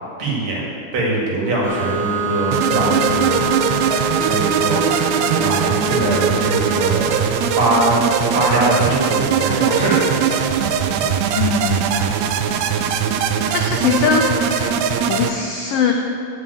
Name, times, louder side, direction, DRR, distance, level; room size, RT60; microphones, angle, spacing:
voice 1, 0.2-0.6 0.9-3.5 3.9-7.1 7.5-8.0 8.3-10.5 10.9-11.0, right 2 dB, 60° right, -4 dB, 3.4 m, -22 dB
sound 1, 1.6-9.0, right 3 dB, 40° right, 3.0 m, -25 dB
sound 2, 2.5-15.3, right 7 dB, 75° right, 1.7 m, -20 dB
voice 2, 11.3-12.0 13.5-14.7 15.1-15.9, left 6 dB, 85° left, 2 dB, 1.3 m, -21 dB
9.6 x 5.9 x 8.4 m, 2.4 s
omnidirectional pair, 3.5 m